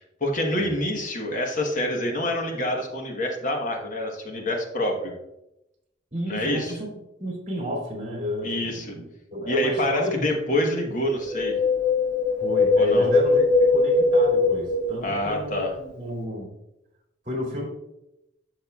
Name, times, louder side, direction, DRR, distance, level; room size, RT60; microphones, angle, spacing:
voice 1, 0.0-5.1 6.3-6.7 8.4-8.9 9.5-11.5 12.8-13.1 15.0-15.7, left 1 dB, 45° left, 2 dB, 1.2 m, -26 dB
voice 2, 6.1-6.9 7.2-9.0 9.3-10.2 12.4-13.5 13.7-16.5 17.2-17.7, left 1 dB, 40° right, -1 dB, 2.6 m, -31 dB
Wind, 11.2-15.5 15.8-15.9, left 3 dB, 65° left, 2.9 m, -21 dB
11.0 x 6.4 x 2.3 m, 0.88 s
head